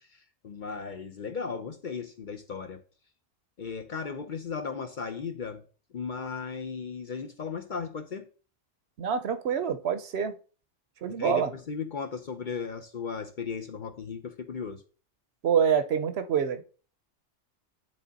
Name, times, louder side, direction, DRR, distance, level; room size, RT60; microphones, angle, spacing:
voice 1, 0.0-2.8 3.6-5.6 5.9-8.3 11.2-14.8, left 5 dB, 50° left, 0.7 m, -36 dB
voice 2, 9.0-10.3 11.0-11.5 15.4-16.6, right 7 dB, 65° right, 0.9 m, -26 dB
10.0 x 3.7 x 4.0 m
omnidirectional pair, 1.2 m